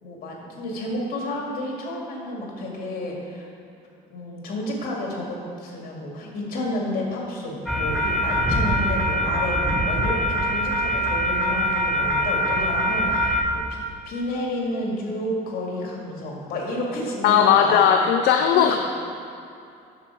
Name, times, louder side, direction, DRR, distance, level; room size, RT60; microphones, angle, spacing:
voice 1, 0.0-3.5 4.1-13.4 13.7-17.9 18.5-18.8, left 1 dB, 60° left, -2 dB, 2.4 m, -30 dB
sound 1, 7.7-13.4, equal, ahead, 1.6 m, -23 dB
voice 2, 17.2-18.8, left 8 dB, 80° left, 5 dB, 0.5 m, -17 dB
9.5 x 7.0 x 4.8 m, 2.6 s
cardioid pair, 110°, 17 cm